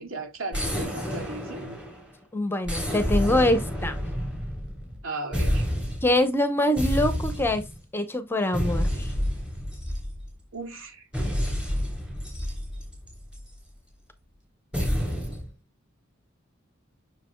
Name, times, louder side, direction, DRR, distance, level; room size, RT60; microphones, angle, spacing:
voice 1, 0.0-1.8 5.0-5.7 10.5-11.1 11.4-11.5, right 2 dB, 70° right, 2.3 m, -36 dB
sound 1, 0.5-2.1 2.7-5.0 5.3-6.2 6.8-7.8 8.5-10.4 11.1-13.5 14.7-15.5, equal, 5° right, 3.3 m, -29 dB
voice 2, 2.3-4.0 6.0-7.6 7.9-9.1, left 1 dB, 10° left, 0.8 m, -24 dB
7.4 x 6.3 x 2.3 m
head